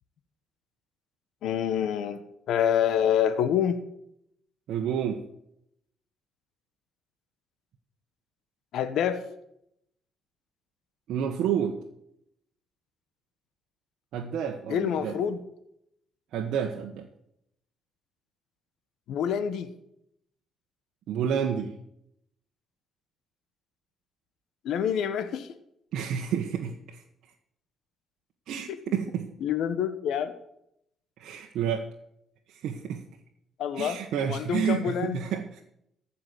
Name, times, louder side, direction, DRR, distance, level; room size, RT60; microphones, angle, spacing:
voice 1, 1.4-2.2 2.5-3.8 8.7-9.2 14.7-15.4 19.1-19.7 24.6-25.5 28.7-28.8 29.4-30.3 33.6-35.2, left 8 dB, 80° left, 11 dB, 1.1 m, -27 dB
voice 2, 4.7-5.2 11.1-11.8 14.1-15.2 16.3-17.1 21.1-21.7 25.9-27.0 28.5-29.3 31.2-31.9 32.5-33.0 33.8-35.6, right 8 dB, 80° right, 1 dB, 1.3 m, -30 dB
15.0 x 5.8 x 9.5 m, 0.77 s
cardioid pair, 90°, 0 cm